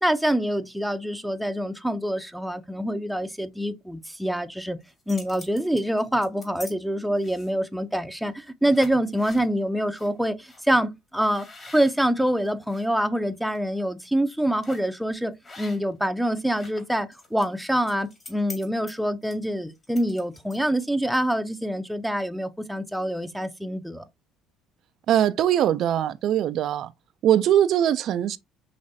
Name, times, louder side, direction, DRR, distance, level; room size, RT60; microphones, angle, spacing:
voice 1, 0.0-4.8 5.1-11.5 11.7-24.0, right 1 dB, ahead, 0.6 m, -26 dB
sound 1, 4.8-6.7 7.2-7.7 8.2-8.4 8.7-9.5 10.0-10.1 10.5-10.6 11.2-12.9 13.3-13.6 14.6-14.9 15.4-16.0 16.3-20.8, left 3 dB, 35° left, 2.1 m, -45 dB
voice 2, 25.1-26.9 27.2-28.4, right 11 dB, 60° right, 0.3 m, -21 dB
5.1 x 3.1 x 2.7 m
supercardioid pair, 80°, 0 cm